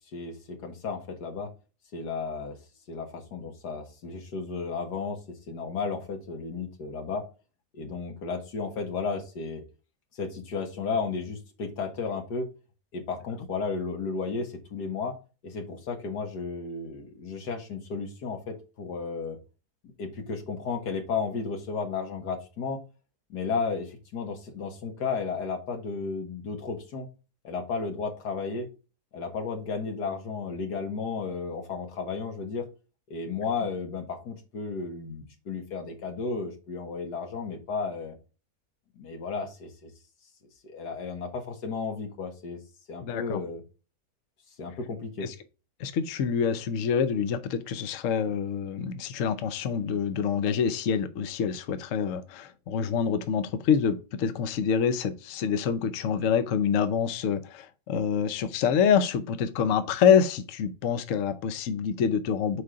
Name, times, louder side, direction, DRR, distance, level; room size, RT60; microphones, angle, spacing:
voice 1, 0.1-1.5 1.9-2.6 2.9-7.2 7.7-9.6 10.1-12.5 12.9-15.2 15.4-19.4 20.0-22.8 23.3-27.1 27.4-28.7 29.1-32.7 33.1-38.2 39.0-39.9 40.6-42.6 42.9-43.6 44.6-45.3, left 4 dB, 90° left, 2.1 m, -33 dB
voice 2, 43.0-43.4 45.2-45.3 45.8-62.6, left 7 dB, 60° left, 1.1 m, -26 dB
6.7 x 4.9 x 3.7 m
omnidirectional pair, 1.7 m